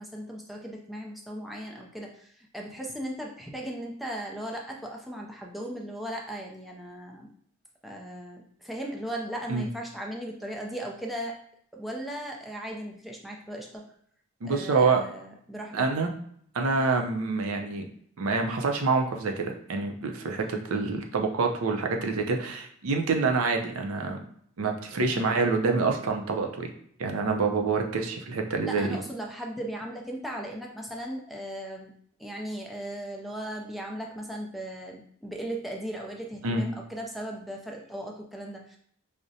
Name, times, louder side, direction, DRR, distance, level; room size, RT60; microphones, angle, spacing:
voice 1, 0.0-7.3 7.8-11.3 11.7-13.8 14.4-15.8 20.4-20.7 25.1-25.3 28.7-31.9 32.2-38.8, right 1 dB, ahead, -1 dB, 0.4 m, -37 dB
voice 2, 14.4-15.0 15.7-16.1 16.5-17.9 18.2-24.2 24.6-26.7 27.0-29.0 36.4-36.6, right 4 dB, 75° right, 3 dB, 0.5 m, -26 dB
4.8 x 2.1 x 2.7 m, 0.63 s
head